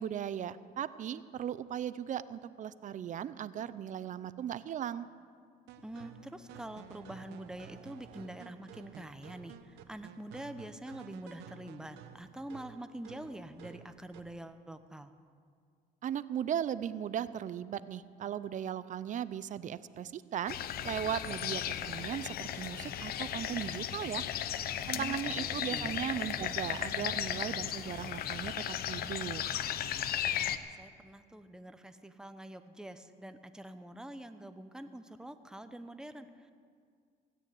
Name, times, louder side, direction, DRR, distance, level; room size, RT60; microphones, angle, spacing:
voice 1, 0.0-5.1 16.0-20.6 20.8-24.3 24.9-29.4, right 9 dB, 50° right, 16 dB, 0.6 m, -37 dB
sound 1, 5.7-14.4, right 9 dB, 85° right, 0.9 m, -53 dB
voice 2, 5.8-15.1 24.9-25.9 30.4-36.5, right 1 dB, 5° right, 9 dB, 0.9 m, -46 dB
sound 2, 20.5-30.6, left 10 dB, 65° left, 0.7 m, -36 dB
16.5 x 9.8 x 8.5 m, 2.1 s
cardioid pair, 110°, 17 cm